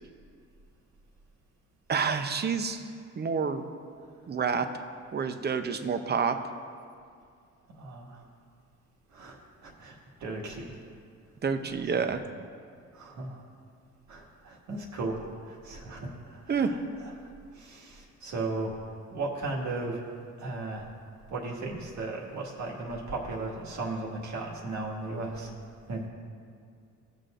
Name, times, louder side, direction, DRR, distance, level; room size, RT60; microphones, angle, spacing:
voice 1, 1.9-2.8 3.2-3.6 4.3-4.7 5.1-6.4 11.4-12.2 16.5-16.7, right 6 dB, 35° right, 8 dB, 0.7 m, -28 dB
voice 2, 7.8-8.2 9.1-10.7 11.6-11.8 12.9-13.4 14.1-15.2 15.5-18.7 19.1-20.0 20.4-20.9 21.3-25.5 25.9-26.1, right 2 dB, 70° right, -2 dB, 1.9 m, -36 dB
18.0 x 6.7 x 2.5 m, 2.2 s
cardioid pair, 90°, 30 cm